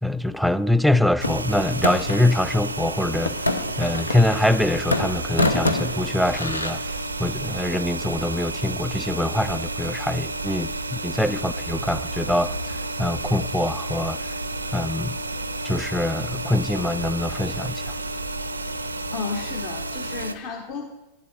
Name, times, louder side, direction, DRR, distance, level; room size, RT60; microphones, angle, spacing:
voice 1, 0.0-3.5 3.8-6.8 7.2-14.2 14.7-15.1 15.6-18.0, left 1 dB, ahead, 0.3 m, -24 dB
sound 1, 1.2-2.3 3.3-4.6 4.9-6.7, left 2 dB, 80° left, 0.7 m, -26 dB
sound 2, 1.2-20.3, right 2 dB, 80° right, 0.5 m, -31 dB
voice 2, 19.1-20.9, left 5 dB, 40° left, 1.1 m, -32 dB
10.0 x 7.5 x 7.0 m
figure-of-eight pair, 90°, 0 cm